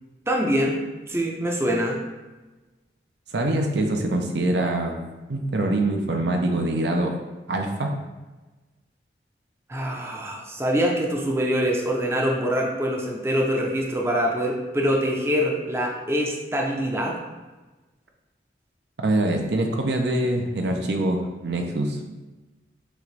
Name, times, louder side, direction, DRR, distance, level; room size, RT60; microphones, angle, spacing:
voice 1, 0.3-0.8 1.1-2.0 9.7-17.2, equal, 15° right, -1 dB, 0.5 m, -24 dB
voice 2, 3.3-5.0 5.3-7.2 7.5-8.0 19.0-22.0, right 1 dB, 75° right, 3 dB, 0.6 m, -24 dB
6.3 x 2.5 x 3.2 m, 1.2 s
head